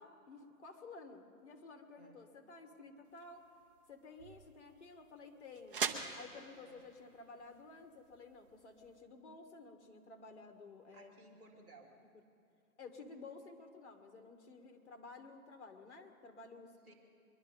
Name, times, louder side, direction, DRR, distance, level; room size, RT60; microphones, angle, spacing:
voice 1, 0.0-3.5 3.9-5.8 6.1-11.1 12.8-16.7, left 3 dB, 50° left, 5 dB, 1.8 m, -53 dB
sound 1, 3.1-9.0, right 6 dB, 35° right, 1.0 m, -45 dB
voice 2, 10.9-11.9 16.8-16.9, right 2 dB, 5° right, -11 dB, 0.7 m, -59 dB
23.0 x 12.0 x 5.4 m, 2.7 s
hypercardioid pair, 160°, 45 cm